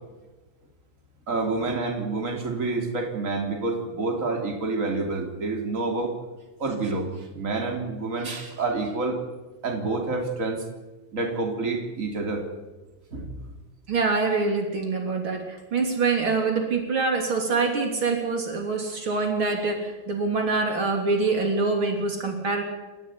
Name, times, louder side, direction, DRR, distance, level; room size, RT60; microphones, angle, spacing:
voice 1, 1.3-6.1 6.6-9.2 9.6-10.7 11.1-12.5 13.1-13.4, right 3 dB, 35° right, 3 dB, 4.0 m, -28 dB
voice 2, 13.9-22.6, right 4 dB, 65° right, 3 dB, 4.1 m, -25 dB
29.0 x 15.0 x 9.8 m, 1.2 s
omnidirectional pair, 2.4 m